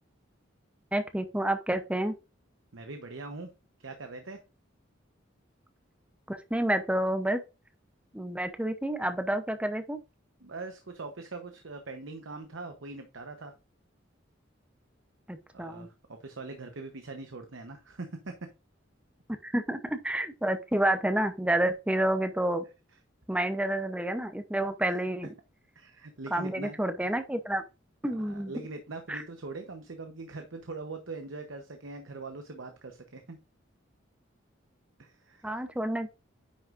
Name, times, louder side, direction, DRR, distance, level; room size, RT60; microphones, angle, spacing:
voice 1, 0.9-2.1 6.3-7.4 8.1-10.0 15.3-15.9 19.4-22.6 23.3-25.3 26.3-27.6 28.0-28.5 29.1-29.2 35.4-36.1, right 1 dB, 5° right, 0.7 m, -29 dB
voice 2, 2.7-3.5 3.8-4.4 10.4-13.5 15.5-18.3 24.8-24.9 25.8-27.2 28.0-33.4 35.0-35.6, right 3 dB, 80° right, 0.9 m, -42 dB
9.7 x 6.3 x 2.5 m
head